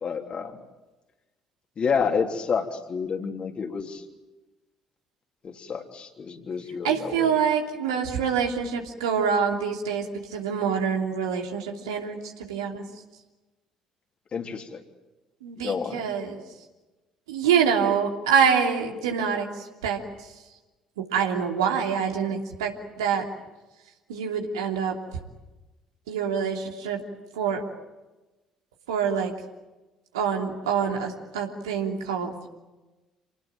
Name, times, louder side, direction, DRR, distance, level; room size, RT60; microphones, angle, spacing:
voice 1, 0.0-0.6 1.8-4.0 5.4-7.4 7.9-8.0 14.3-14.8 15.6-16.0, left 6 dB, 40° left, 4 dB, 3.4 m, -29 dB
voice 2, 6.8-10.0 10.3-12.2 12.5-12.8 15.4-16.4 17.3-19.5 19.8-20.0 21.1-22.7 23.0-23.3 24.1-24.9 26.1-27.0 27.3-27.6 28.9-29.3 30.1-32.3, right 7 dB, 75° right, 2 dB, 3.0 m, -25 dB
28.5 x 19.5 x 9.0 m, 1.1 s
figure-of-eight pair, 50°, 3 cm